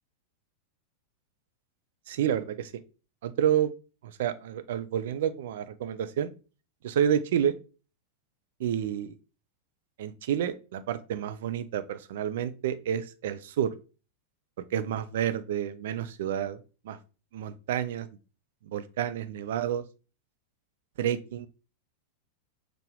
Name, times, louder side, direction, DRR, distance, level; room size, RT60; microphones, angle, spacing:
voice 1, 2.1-2.7 3.2-3.7 4.0-6.3 6.8-7.5 8.6-9.1 10.0-13.7 14.7-16.6 16.8-17.0 17.3-18.1 18.6-19.8 21.0-21.5, right 9 dB, 55° right, 11 dB, 0.4 m, -29 dB
4.5 x 2.5 x 3.3 m, 0.33 s
figure-of-eight pair, 90°, 0 cm